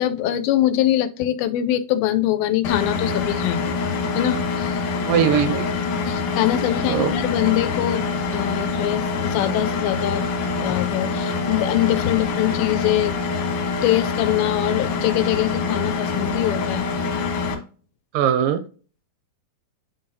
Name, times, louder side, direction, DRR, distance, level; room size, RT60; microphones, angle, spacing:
voice 1, 0.0-3.8 4.1-4.8 6.0-10.3 10.6-13.1 13.8-16.9, left 13 dB, 90° left, 11 dB, 2.4 m, -23 dB
Engine, 2.6-17.5, left 4 dB, 60° left, 2.5 m, -25 dB
voice 2, 5.0-5.7 6.9-7.1 18.1-18.6, right 8 dB, 80° right, 9 dB, 2.0 m, -20 dB
11.0 x 3.8 x 2.7 m, 0.39 s
omnidirectional pair, 4.2 m